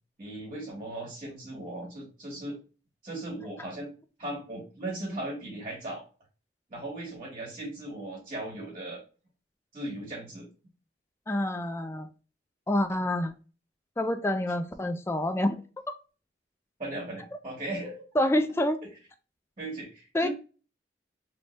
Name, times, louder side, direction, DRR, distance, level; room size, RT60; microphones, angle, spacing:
voice 1, 0.2-2.6 3.0-3.9 4.2-6.0 6.7-9.0 9.7-10.5 16.8-18.0 19.6-20.3, right 1 dB, 35° right, 1.4 m, -37 dB
voice 2, 11.3-12.1 12.7-13.3 14.0-15.6 18.2-18.8 20.1-20.3, left 1 dB, 15° left, 0.3 m, -27 dB
3.2 x 2.6 x 3.1 m
head